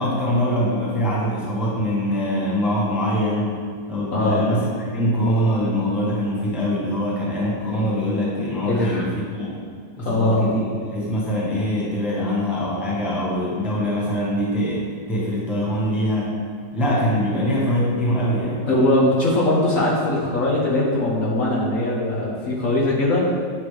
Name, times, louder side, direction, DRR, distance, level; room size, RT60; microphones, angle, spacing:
voice 1, 0.0-3.5 3.9-9.6 10.0-10.6 10.9-16.3 16.7-18.7, equal, ahead, -5 dB, 0.9 m, -23 dB
voice 2, 4.1-4.4 8.7-9.0 10.0-10.5 18.6-23.3, left 1 dB, 55° left, -5 dB, 1.2 m, -21 dB
8.7 x 5.1 x 3.3 m, 2.2 s
omnidirectional pair, 1.9 m